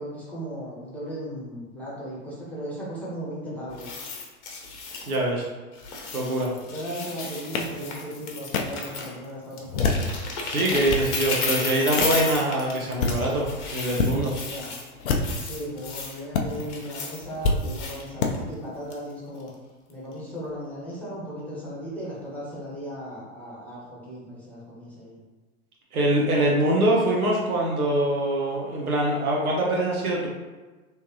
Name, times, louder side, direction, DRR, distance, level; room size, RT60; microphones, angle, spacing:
voice 1, 0.0-4.0 6.7-10.1 14.4-14.7 15.4-19.5 19.9-25.2, equal, 5° left, -8 dB, 1.1 m, -36 dB
sound 1, 3.7-5.4 5.7-9.3 9.5-16.2 16.5-18.5 18.9-19.1 19.5-19.6, left 4 dB, 50° left, 1.0 m, -34 dB
voice 2, 5.1-5.5 6.1-6.5 10.5-14.3 25.9-30.3, right 1 dB, 75° right, -2 dB, 1.0 m, -24 dB
sound 2, 7.5-7.6 8.5-8.6 9.6-10.1 10.6-11.1 12.0-12.2 12.8-13.2 13.9-14.1 15.0-15.5 16.3-16.4 17.4-17.6 18.2-18.3, left 4 dB, 70° left, 0.6 m, -25 dB
3.4 x 3.2 x 2.9 m, 1.3 s
figure-of-eight pair, 95°, 44 cm